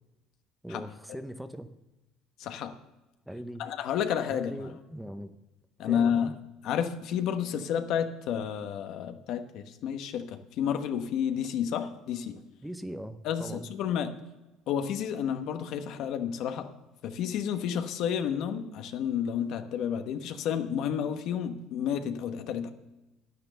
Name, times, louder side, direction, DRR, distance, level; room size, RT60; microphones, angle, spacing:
voice 1, 0.6-1.7 3.3-3.7 4.3-5.3 5.8-6.3 12.6-13.7, equal, 5° right, 10 dB, 0.7 m, -40 dB
voice 2, 2.4-2.7 3.6-4.7 5.8-6.4 6.6-12.4 13.2-14.2 14.7-16.7 17.0-22.7, left 8 dB, 65° left, 7 dB, 1.1 m, -31 dB
10.0 x 9.6 x 6.8 m, 1.0 s
cardioid pair, 120°, 0 cm